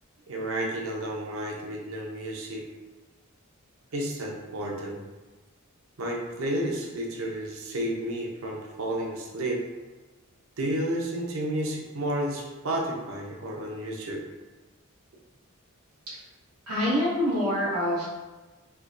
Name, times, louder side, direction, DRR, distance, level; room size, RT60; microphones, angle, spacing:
voice 1, 0.3-2.6 3.9-5.0 6.0-9.6 10.6-14.2, right 1 dB, 65° right, -1 dB, 0.7 m, -31 dB
voice 2, 16.7-18.1, left 1 dB, 80° right, -8 dB, 1.1 m, -25 dB
3.3 x 2.9 x 2.5 m, 1.2 s
head